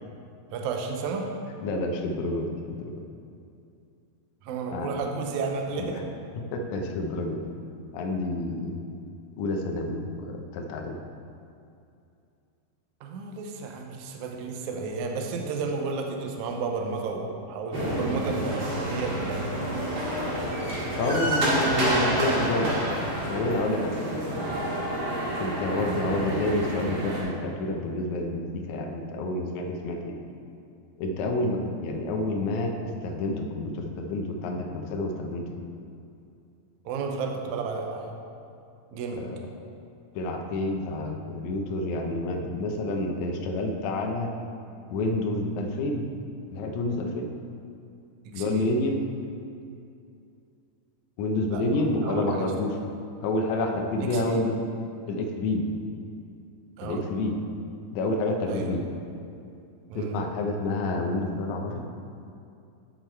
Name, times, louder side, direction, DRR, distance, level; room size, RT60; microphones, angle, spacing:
voice 1, 0.5-1.3 4.4-6.0 13.0-19.5 36.9-38.1 38.9-39.2 48.3-48.7 51.5-51.6 52.0-52.5 54.0-54.4 56.8-57.0 58.5-58.7 59.9-60.2, right 4 dB, 75° right, 2 dB, 1.9 m, -32 dB
voice 2, 1.6-3.0 4.7-4.9 5.8-6.0 6.5-7.4 7.9-8.8 9.4-11.0 21.0-22.8 23.3-24.0 25.4-30.2 31.0-35.6 39.1-39.4 40.2-44.3 44.9-46.0 46.5-47.3 48.3-49.0 51.2-52.7 53.2-54.6 55.1-55.6 56.8-57.4 57.9-58.8 60.0-61.8, left 2 dB, 70° left, 2 dB, 1.8 m, -28 dB
sound 1, 17.7-27.2, right 1 dB, 45° right, 2.1 m, -28 dB
10.5 x 6.1 x 4.5 m, 2.5 s
omnidirectional pair, 4.1 m